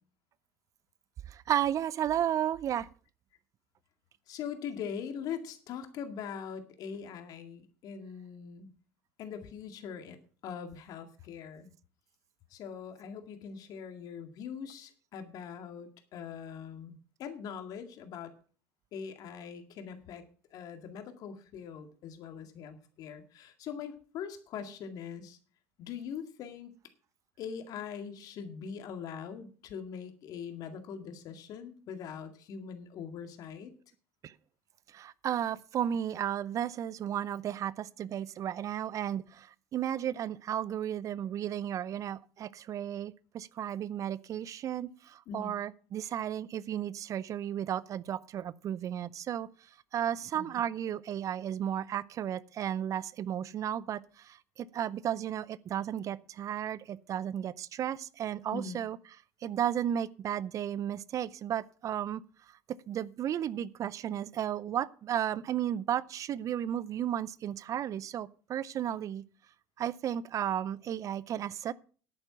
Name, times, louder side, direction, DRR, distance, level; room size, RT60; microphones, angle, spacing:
voice 1, 1.3-2.9 34.2-34.3 34.9-49.5 49.9-59.0 59.4-62.2 62.5-62.6 62.9-69.2 69.8-71.7, right 10 dB, 50° right, 21 dB, 0.5 m, -34 dB
voice 2, 4.3-8.7 9.2-10.2 10.4-11.7 12.5-18.3 18.9-20.2 20.5-25.4 25.8-26.7 27.4-33.7 45.3-45.5 50.3-50.6 58.5-58.8, left 7 dB, 60° left, 7 dB, 2.1 m, -42 dB
10.5 x 8.9 x 5.8 m, 0.40 s
hypercardioid pair, 70°, 7 cm